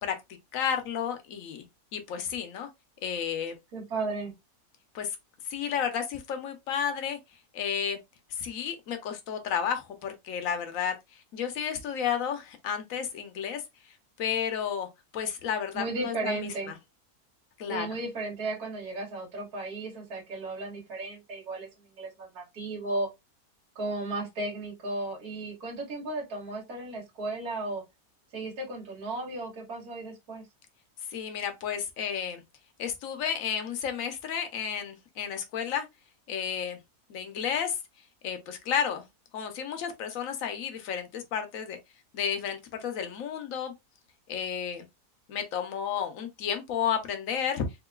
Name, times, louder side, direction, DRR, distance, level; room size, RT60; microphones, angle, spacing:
voice 1, 0.5-1.6 1.9-2.7 3.0-3.5 4.9-5.2 5.5-7.2 7.5-8.0 8.3-13.6 14.2-14.9 15.1-16.5 17.6-17.9 31.1-32.4 32.8-35.9 36.3-36.8 37.1-37.8 38.2-39.0 39.3-41.8 42.1-43.7 44.3-44.9 45.3-47.6, left 8 dB, 65° left, 1.1 m, -32 dB
voice 2, 3.7-4.3 15.7-16.8 17.7-23.1 23.8-27.8 28.3-30.5, right 2 dB, 75° right, 2.0 m, -35 dB
3.8 x 2.6 x 2.3 m
omnidirectional pair, 1.6 m